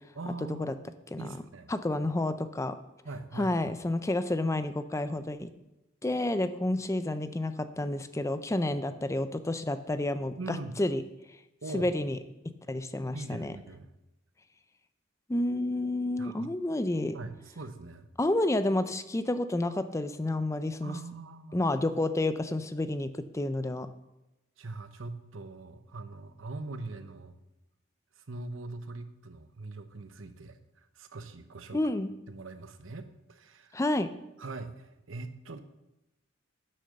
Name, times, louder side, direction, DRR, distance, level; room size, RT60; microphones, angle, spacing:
voice 1, 0.1-0.8 1.2-1.7 3.0-3.8 10.4-10.8 11.6-11.9 13.1-13.9 16.2-16.5 17.1-18.1 20.8-21.6 24.6-27.4 28.2-30.6 30.9-31.8 32.3-33.8 34.4-35.6, right 3 dB, 75° right, 9 dB, 0.9 m, -42 dB
voice 2, 1.7-2.8 3.4-5.5 6.0-11.0 11.7-12.2 12.7-13.5 15.3-17.2 18.2-21.0 21.5-23.9 31.7-32.1 33.7-34.1, left 1 dB, 15° left, 11 dB, 0.4 m, -30 dB
9.8 x 6.7 x 6.5 m, 0.93 s
head